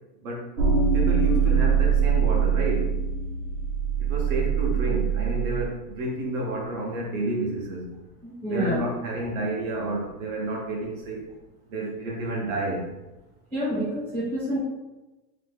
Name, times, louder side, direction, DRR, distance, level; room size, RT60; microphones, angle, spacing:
sound 1, 0.6-5.7, right 6 dB, 75° right, 0.9 m, -23 dB
voice 1, 0.9-3.0 4.0-7.9 8.5-11.3 11.7-12.9, right 1 dB, 55° right, -2 dB, 1.0 m, -30 dB
voice 2, 8.2-8.8 13.5-14.6, right 1 dB, 5° left, -13 dB, 0.5 m, -28 dB
3.0 x 2.1 x 3.4 m, 1.1 s
supercardioid pair, 165°, 49 cm